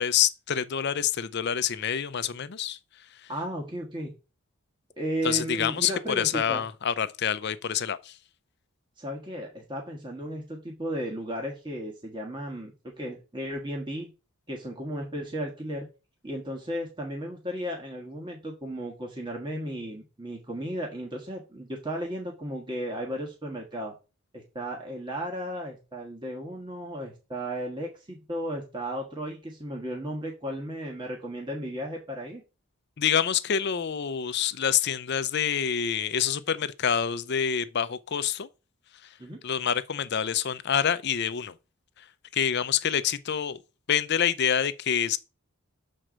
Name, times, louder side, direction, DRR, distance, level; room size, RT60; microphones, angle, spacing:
voice 1, 0.0-2.8 3.1-3.3 5.2-8.2 33.0-38.5 39.0-39.1 39.4-41.5 42.0-42.1 42.3-43.6 43.9-45.2, left 8 dB, 50° left, 0.5 m, -27 dB
voice 2, 3.3-4.1 5.0-6.6 9.0-14.1 14.5-15.9 16.2-23.9 24.3-32.4 39.2-39.4, equal, 20° right, 1.4 m, -35 dB
6.4 x 4.4 x 6.2 m
head